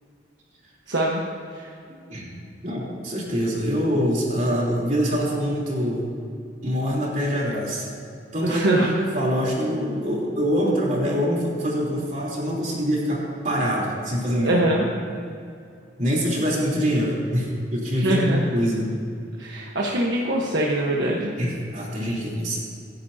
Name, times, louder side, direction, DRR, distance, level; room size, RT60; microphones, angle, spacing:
voice 1, 0.9-1.2 1.5-1.7 8.4-8.9 14.4-14.8 18.0-18.5 19.4-21.3, right 1 dB, 70° right, -3 dB, 1.3 m, -23 dB
voice 2, 2.6-6.1 6.6-8.0 8.3-14.7 16.0-18.9 21.4-22.6, equal, 40° right, -4 dB, 3.7 m, -24 dB
26.5 x 10.5 x 2.9 m, 2.4 s
head